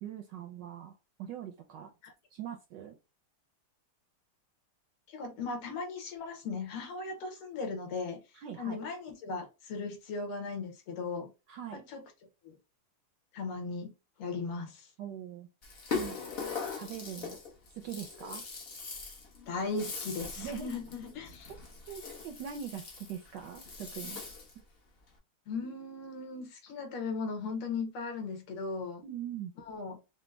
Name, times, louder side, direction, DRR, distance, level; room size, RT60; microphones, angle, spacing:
voice 1, 0.0-0.9 1.2-1.9 2.3-3.0 8.3-8.8 11.5-11.8 15.0-15.5 15.9-16.2 16.8-17.4 17.7-18.4 20.4-20.7 21.9-24.2 29.0-29.5, right 9 dB, 75° right, 1.0 m, -42 dB
voice 2, 5.1-8.2 8.6-11.3 11.7-12.0 12.4-12.6 13.3-13.9 14.2-14.9 19.5-21.5 25.5-29.0 29.7-30.0, left 4 dB, 90° left, 2.0 m, -37 dB
Rattle (instrument), 15.6-24.6, left 5 dB, 65° left, 0.5 m, -41 dB
5.0 x 2.0 x 3.2 m
omnidirectional pair, 2.4 m